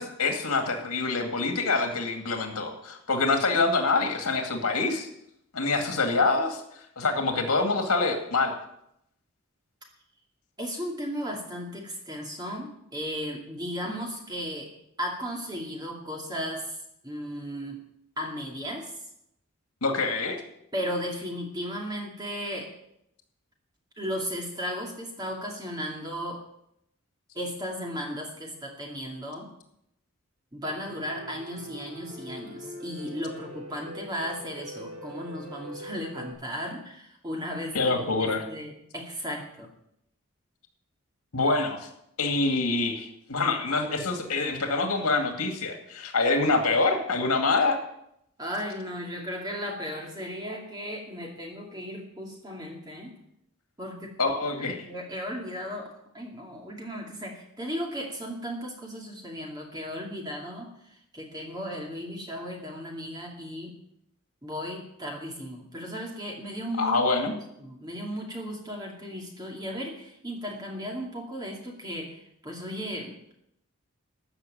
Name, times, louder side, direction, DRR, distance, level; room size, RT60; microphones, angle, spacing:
voice 1, 0.0-5.1 5.5-6.6 7.0-8.5 19.8-20.4 37.7-38.4 41.3-41.8 42.2-47.8 54.2-54.9 66.8-67.3, left 3 dB, 85° left, 4 dB, 2.3 m, -25 dB
voice 2, 10.6-14.7 15.0-16.8 17.0-17.8 18.2-18.9 20.7-22.7 24.0-26.4 27.3-29.5 30.5-39.7 48.4-53.1 53.8-54.2 54.9-63.8 64.4-73.4, equal, 20° right, 0 dB, 2.4 m, -35 dB
Piano, 30.7-36.3, equal, 70° right, 5.0 m, -42 dB
14.0 x 6.3 x 9.0 m, 0.77 s
head